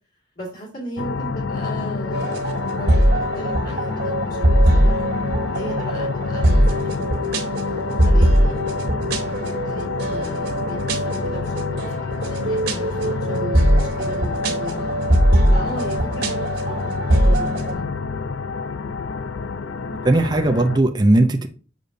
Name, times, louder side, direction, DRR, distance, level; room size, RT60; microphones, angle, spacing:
voice 1, 0.4-5.0 5.6-8.6 9.0-11.9 12.1-14.9 15.5-17.9, equal, 45° left, 2.0 m, -36 dB
sound 1, 1.0-20.8, left 4 dB, 75° left, 0.5 m, -28 dB
sound 2, 2.1-17.7, equal, 55° right, 1.4 m, -21 dB
voice 2, 20.0-21.5, right 2 dB, 20° right, 0.5 m, -17 dB
6.8 x 6.3 x 2.7 m
head